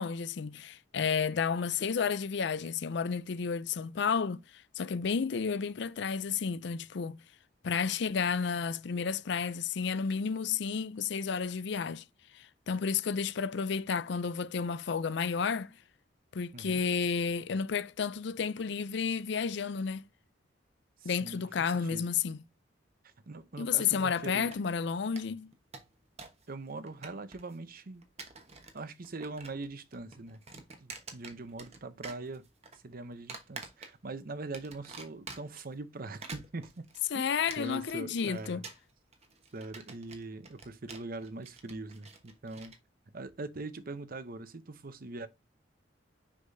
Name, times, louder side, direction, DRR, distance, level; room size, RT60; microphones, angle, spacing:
voice 1, 0.0-7.2 7.6-12.0 12.3-15.7 16.3-20.0 21.0-22.4 23.6-25.5 37.1-38.6, left 6 dB, 65° left, 0.5 m, -31 dB
voice 2, 16.5-16.8 21.0-22.1 23.0-24.5 26.5-28.0 28.7-32.4 32.7-36.8 37.1-37.3 37.6-38.6 39.5-42.7 43.1-45.3, right 3 dB, 50° right, 0.7 m, -42 dB
sound 1, 24.3-24.9 25.2-25.3 25.5-26.4 26.7-27.5 28.0-28.8 29.0-29.7 29.9-31.8 32.0-32.8 33.3-34.1 34.5-35.6 36.0-42.8, right 4 dB, 35° right, 1.2 m, -47 dB
6.2 x 5.7 x 2.7 m
head